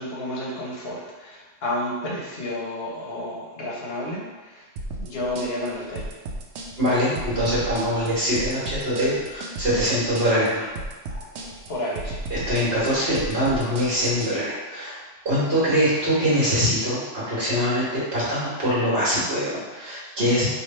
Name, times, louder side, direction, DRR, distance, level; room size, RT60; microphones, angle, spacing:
voice 1, 0.0-4.7 5.0-6.1 11.7-12.3 15.4-15.7, left 1 dB, 55° left, -3 dB, 1.1 m, -31 dB
sound 1, 4.8-14.3, right 2 dB, 85° right, 0.9 m, -34 dB
voice 2, 6.8-10.7 11.1-11.5 12.3-15.0 15.2-20.5, equal, 55° right, -9 dB, 1.6 m, -23 dB
3.3 x 2.7 x 4.1 m, 1.3 s
omnidirectional pair, 1.3 m